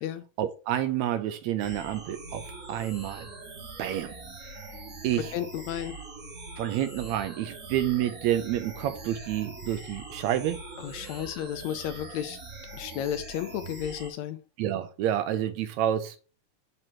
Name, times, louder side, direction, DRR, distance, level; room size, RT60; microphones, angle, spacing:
voice 1, 0.4-3.3 3.8-4.2 5.0-5.3 6.6-10.6 10.9-11.2 14.6-16.2, right 11 dB, 80° right, 1.7 m, -29 dB
sound 1, 1.6-14.1, right 2 dB, 35° right, 1.5 m, -43 dB
voice 2, 5.2-6.0 10.8-12.4 12.7-14.4, left 10 dB, 80° left, 1.7 m, -33 dB
7.7 x 2.9 x 6.1 m
omnidirectional pair, 3.5 m